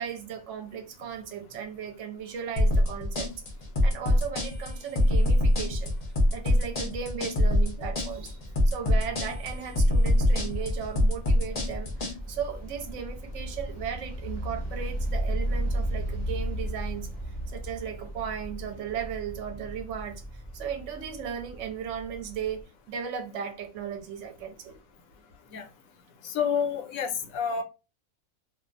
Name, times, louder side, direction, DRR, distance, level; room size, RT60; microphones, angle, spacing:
voice 1, 0.0-3.3 3.8-6.0 6.3-8.4 8.7-17.1 17.5-20.2 20.5-22.6 22.9-24.8, right 8 dB, 65° right, 0.8 m, -36 dB
sound 1, 2.6-12.1, left 1 dB, 45° left, 0.5 m, -23 dB
sound 2, 7.3-22.6, right 1 dB, 15° right, 0.9 m, -36 dB
voice 2, 26.2-27.6, left 7 dB, 75° left, 1.0 m, -29 dB
2.5 x 2.3 x 2.4 m
omnidirectional pair, 1.5 m